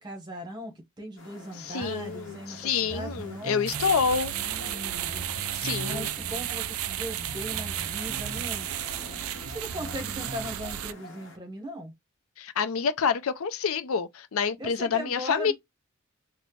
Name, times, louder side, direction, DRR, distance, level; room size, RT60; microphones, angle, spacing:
voice 1, 0.0-3.5 4.3-8.7 9.5-11.9 14.6-15.5, equal, 20° right, 1.0 m, -39 dB
sound 1, 1.2-11.4, left 2 dB, 60° left, 0.9 m, -47 dB
voice 2, 1.6-4.3 5.5-6.1 12.4-15.5, left 6 dB, 75° left, 0.5 m, -27 dB
sound 2, 1.8-10.5, right 2 dB, 40° right, 0.7 m, -42 dB
sound 3, 3.7-10.9, right 12 dB, 80° right, 0.3 m, -33 dB
4.1 x 2.1 x 3.0 m
head